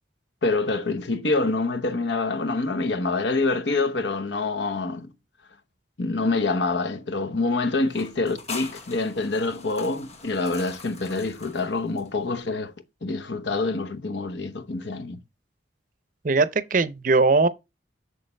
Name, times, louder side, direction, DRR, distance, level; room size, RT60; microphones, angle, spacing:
voice 1, 0.4-5.1 6.0-12.7 13.0-15.2, left 3 dB, 70° left, 0.9 m, -26 dB
sound 1, 7.9-12.5, left 4 dB, 35° left, 1.1 m, -42 dB
voice 2, 16.2-17.5, right 3 dB, 45° right, 0.6 m, -20 dB
7.0 x 6.4 x 3.3 m
head